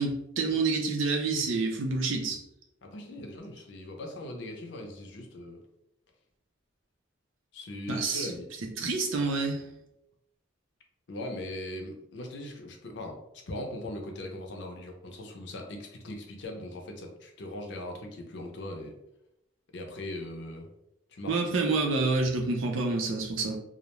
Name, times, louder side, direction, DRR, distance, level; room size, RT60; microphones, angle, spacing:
voice 1, 0.0-2.4 7.9-8.3 8.8-9.6 21.3-23.6, right 3 dB, 80° right, 2 dB, 0.5 m, -28 dB
voice 2, 2.8-5.6 7.5-8.5 11.1-13.2 13.5-18.9 19.7-20.7 21.1-21.4, left 1 dB, 60° left, 2 dB, 0.5 m, -39 dB
2.4 x 2.1 x 2.9 m, 0.82 s
head